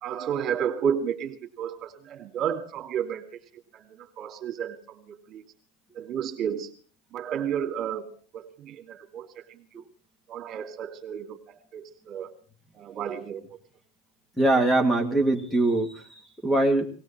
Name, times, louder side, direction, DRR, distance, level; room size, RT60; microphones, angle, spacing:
voice 1, 0.0-3.4 3.7-5.4 5.9-6.7 7.1-8.1 8.3-9.8 10.3-11.4 11.7-12.3 12.7-13.5, right 8 dB, 35° right, 5 dB, 2.7 m, -32 dB
voice 2, 14.4-16.9, right 2 dB, 5° left, 5 dB, 2.1 m, -23 dB
19.0 x 17.0 x 4.2 m, 0.40 s
supercardioid pair, 140°, 0 cm